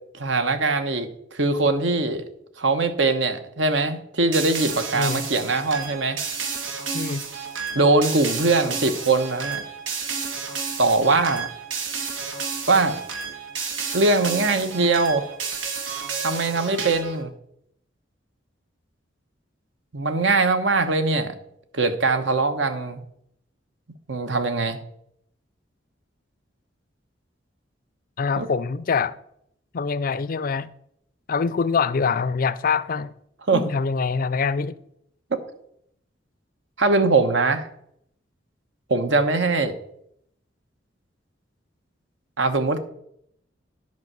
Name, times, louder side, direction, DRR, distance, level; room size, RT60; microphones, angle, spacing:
voice 1, 0.2-2.2 2.6-6.2 7.7-9.6 10.8-11.5 12.7-13.0 13.9-15.3 16.2-17.3 19.9-21.3 21.7-23.0 24.1-24.8 28.4-28.5 33.5-33.6 35.3-35.4 36.8-37.7 38.9-39.7 42.4-42.8, right 3 dB, 70° right, 1.1 m, -21 dB
sound 1, 4.3-17.2, right 5 dB, 90° right, 1.5 m, -31 dB
voice 2, 28.2-29.2 29.7-30.7 31.3-33.1 33.5-34.7, left 5 dB, 50° left, 0.4 m, -24 dB
10.5 x 5.4 x 6.2 m
head